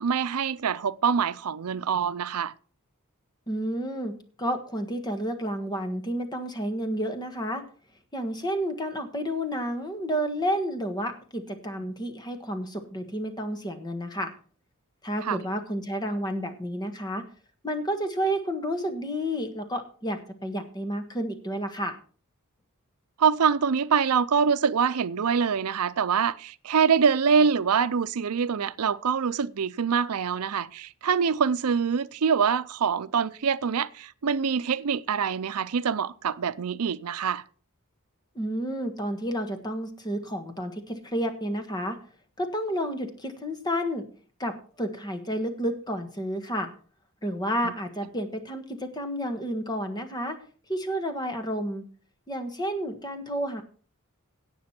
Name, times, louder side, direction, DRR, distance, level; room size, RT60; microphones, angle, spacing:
voice 1, 0.0-2.5 15.2-15.4 23.2-37.4 47.6-47.7, right 6 dB, 90° right, 0.5 m, -25 dB
voice 2, 3.5-7.6 8.1-14.3 15.0-17.2 17.6-22.0 38.3-42.0 42.4-44.0 44.4-46.7 47.2-50.4 50.7-51.9 52.3-53.6, equal, 20° left, 1.4 m, -30 dB
17.0 x 6.2 x 4.4 m
head